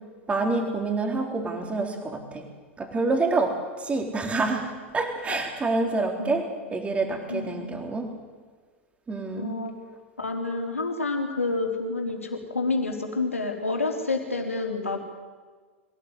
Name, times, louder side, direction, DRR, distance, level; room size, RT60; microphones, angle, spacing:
voice 1, 0.3-2.4 2.8-8.1 9.1-9.6, right 3 dB, 15° right, 3 dB, 4.0 m, -27 dB
voice 2, 7.3-7.9 9.4-9.7 10.2-15.0, left 3 dB, 90° left, 2 dB, 4.0 m, -29 dB
25.0 x 17.0 x 8.4 m, 1.5 s
figure-of-eight pair, 95°, 7 cm